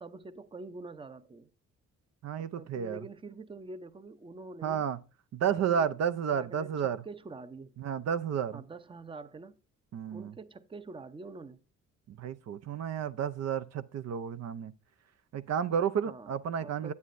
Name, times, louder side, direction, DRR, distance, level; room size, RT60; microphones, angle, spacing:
voice 1, 0.0-1.5 2.4-4.8 5.4-5.9 6.3-7.7 8.5-9.6 10.1-11.6 16.0-16.9, right 3 dB, 15° right, 0.7 m, -46 dB
voice 2, 2.2-3.0 4.6-5.0 5.3-7.0 7.8-8.6 9.9-10.3 12.2-14.7 15.3-16.9, right 8 dB, 60° right, 0.6 m, -31 dB
9.5 x 8.2 x 2.6 m
cardioid pair, 90°, 30 cm